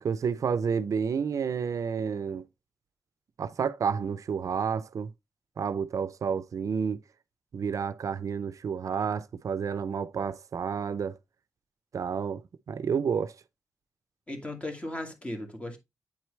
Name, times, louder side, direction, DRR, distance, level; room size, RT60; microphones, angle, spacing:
voice 1, 0.0-2.4 3.4-5.1 5.6-7.0 7.5-11.2 11.9-12.4 12.7-13.3, right 6 dB, 70° right, 0.5 m, -30 dB
voice 2, 14.3-15.8, left 1 dB, 20° left, 1.9 m, -36 dB
8.7 x 4.5 x 3.1 m
wide cardioid pair, 100°, 6 cm